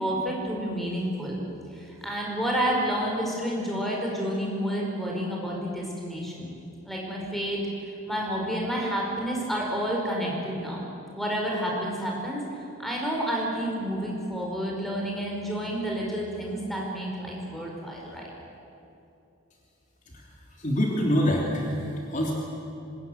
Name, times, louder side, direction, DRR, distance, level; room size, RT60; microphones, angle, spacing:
voice 1, 0.0-1.4 1.7-6.5 6.8-10.8 11.1-12.5 12.8-18.2, equal, ahead, -2 dB, 5.1 m, -30 dB
voice 2, 20.1-22.3, equal, 35° left, -2 dB, 3.1 m, -26 dB
25.0 x 21.5 x 9.5 m, 2.8 s
head